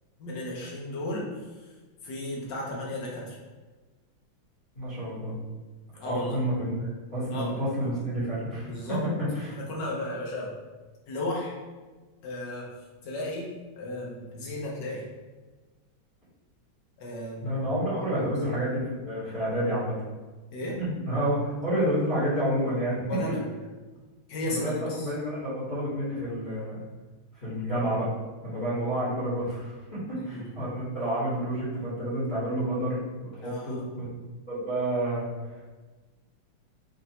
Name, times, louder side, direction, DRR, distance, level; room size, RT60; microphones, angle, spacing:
voice 1, 0.2-1.3 1.6-1.7 2.0-3.4 5.9-6.4 7.3-7.5 7.8-7.9 8.6-9.0 9.5-10.6 11.1-11.6 12.2-12.7 13.0-15.0 17.0-17.6 18.0-18.3 20.5-20.8 23.1-23.4 24.3-25.1 30.1-30.7 33.4-33.8, left 1 dB, 65° left, -3 dB, 1.6 m, -34 dB
voice 2, 4.7-5.4 6.0-8.7 9.2-9.5 17.4-19.9 20.8-23.0 24.4-26.8 27.4-28.1 28.4-29.7 30.1-34.1 34.5-35.3, equal, 25° left, -13 dB, 1.6 m, -29 dB
5.4 x 2.6 x 2.9 m, 1.3 s
omnidirectional pair, 2.2 m